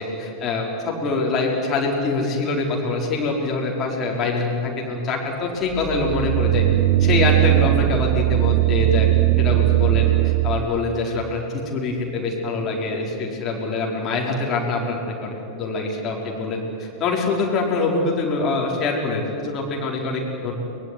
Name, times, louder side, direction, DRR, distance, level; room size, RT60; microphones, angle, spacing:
voice 1, 0.0-6.6 7.0-9.1 9.4-20.5, left 3 dB, 30° left, -2 dB, 5.0 m, -24 dB
sound 1, 5.7-10.8, right 18 dB, 45° right, 0.5 m, -19 dB
23.0 x 21.0 x 9.7 m, 2.6 s
figure-of-eight pair, 90°, 0 cm